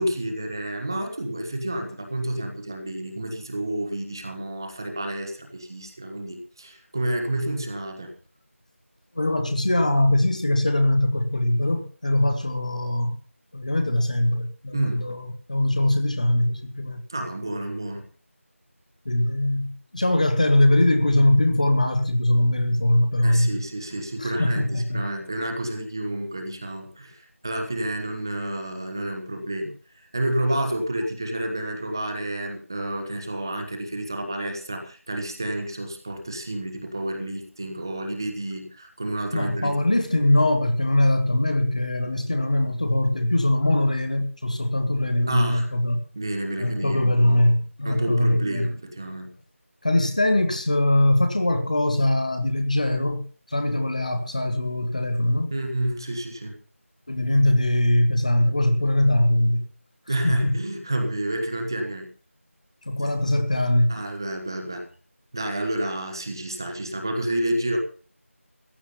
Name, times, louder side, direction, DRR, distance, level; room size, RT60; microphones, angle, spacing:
voice 1, 0.0-8.1 14.7-15.1 17.1-18.0 23.2-29.7 30.1-39.9 45.3-45.7 46.1-47.5 47.8-49.3 55.5-56.6 60.1-62.1 63.0-63.1 63.9-64.9 65.3-67.8, right 1 dB, 15° right, 1.2 m, -30 dB
voice 2, 9.1-13.2 13.5-17.0 19.0-23.6 24.2-25.1 39.3-46.0 46.6-48.7 49.8-55.5 57.1-59.7 60.2-60.5 62.9-64.0, left 1 dB, 30° left, 1.2 m, -22 dB
15.0 x 9.6 x 5.5 m
figure-of-eight pair, 175°, 8 cm